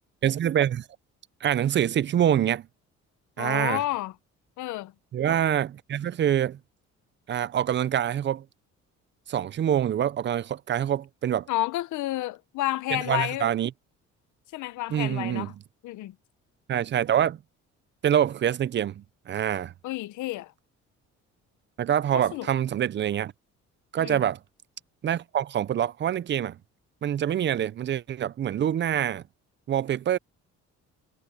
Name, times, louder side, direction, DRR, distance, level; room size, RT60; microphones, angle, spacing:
voice 1, 0.2-0.8 1.4-2.7 3.4-3.8 5.1-6.6 7.3-8.4 9.3-11.5 12.9-13.7 14.9-15.5 16.7-17.4 18.0-19.7 21.8-23.3 23.9-24.4 25.0-26.6 27.0-29.2 29.7-30.2, right 10 dB, 40° right, 0.4 m, -25 dB
voice 2, 3.4-4.1 4.6-4.9 11.5-13.5 14.5-15.5 15.8-16.1 19.8-20.5 22.1-22.5 24.0-24.2, left 16 dB, 90° left, 0.9 m, -30 dB
cardioid pair, 115°, 29 cm